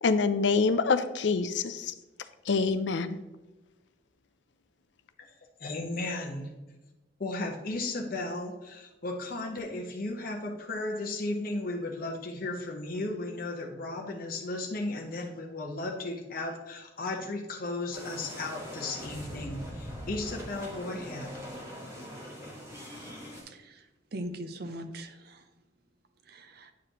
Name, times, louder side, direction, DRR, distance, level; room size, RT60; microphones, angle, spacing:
voice 1, 0.0-1.9 2.5-3.2, left 4 dB, 70° left, 11 dB, 0.5 m, -26 dB
voice 2, 5.6-6.5 7.2-21.3, left 2 dB, 50° left, 1 dB, 0.9 m, -35 dB
sound 1, 17.9-23.4, equal, 15° right, 1.6 m, -42 dB
voice 3, 23.4-23.9 24.1-25.4 26.3-26.7, right 1 dB, 55° right, 8 dB, 0.6 m, -40 dB
9.3 x 5.0 x 2.9 m, 1.1 s
head